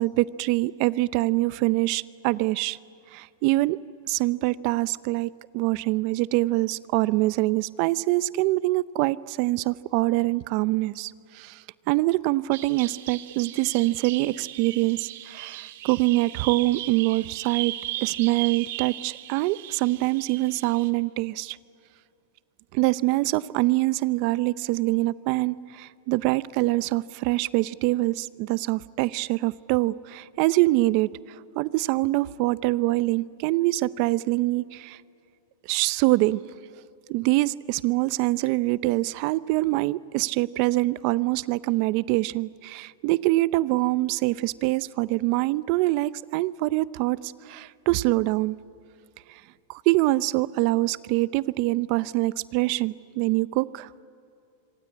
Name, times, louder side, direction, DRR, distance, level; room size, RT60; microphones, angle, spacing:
voice 1, 0.0-2.8 3.1-3.8 4.1-17.7 18.0-21.6 22.7-31.1 31.6-35.0 35.7-36.4 37.1-48.6 49.7-54.0, right 19 dB, 45° right, 19 dB, 0.6 m, -24 dB
Bird vocalization bird call bird song, 12.5-20.9, right 14 dB, 65° right, 1.6 m, -37 dB
25.5 x 25.0 x 8.7 m, 2.5 s
supercardioid pair, 150°, 0 cm